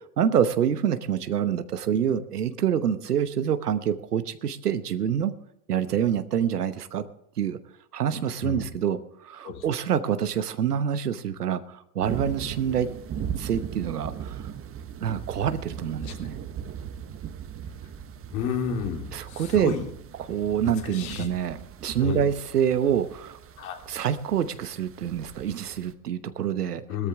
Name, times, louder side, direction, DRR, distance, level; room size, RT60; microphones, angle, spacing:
voice 1, 0.2-5.3 5.7-7.1 7.4-7.6 7.9-12.9 13.4-14.5 15.0-16.3 19.1-19.7 20.3-23.4 23.9-26.8, right 8 dB, 90° right, 12 dB, 1.0 m, -26 dB
sound 1, 12.0-25.9, right 8 dB, 30° right, 1.1 m, -39 dB
voice 2, 18.3-19.9 20.8-21.3 22.0-22.2 23.6-23.8 26.9-27.1, left 7 dB, 65° left, 2 dB, 3.1 m, -31 dB
18.5 x 13.5 x 3.5 m, 0.78 s
hypercardioid pair, 85°, 45 cm